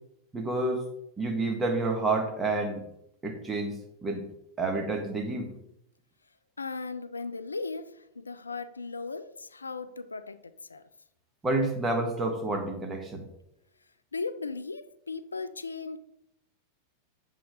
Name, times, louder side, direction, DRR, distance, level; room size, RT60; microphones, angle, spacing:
voice 1, 0.3-0.8 1.2-2.8 3.2-3.7 4.0-4.2 4.6-5.5 11.4-13.2, right 2 dB, 15° right, 1.5 m, -29 dB
voice 2, 6.6-10.8 14.1-16.0, left 4 dB, 75° left, 0.3 m, -37 dB
7.7 x 3.9 x 5.2 m
figure-of-eight pair, 90°, 0 cm